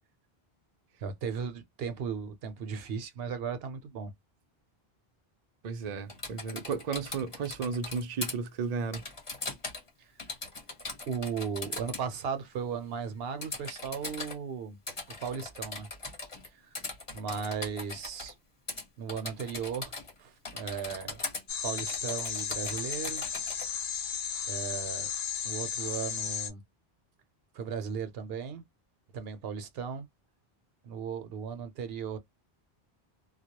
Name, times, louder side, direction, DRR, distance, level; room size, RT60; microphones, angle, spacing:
voice 1, 1.0-4.1 11.1-14.8 15.2-15.9 16.5-16.6 17.1-18.3 19.0-19.9 20.2-21.2 21.6-23.3 24.5-25.1 25.4-26.6 27.5-28.6 29.1-30.1 30.8-32.2, right 6 dB, 75° right, 0.8 m, -36 dB
voice 2, 5.6-9.0, right 5 dB, 55° right, 0.5 m, -34 dB
Typing, 6.1-8.3 8.9-9.9 10.2-12.0 13.4-14.4 14.9-16.5 16.7-18.3 18.7-18.8 19.1-20.2 20.4-21.4 21.8-23.7, left 2 dB, 35° left, 0.9 m, -40 dB
sound 1, 21.5-26.5, left 7 dB, 70° left, 0.8 m, -34 dB
2.3 x 2.0 x 2.7 m
omnidirectional pair, 1.0 m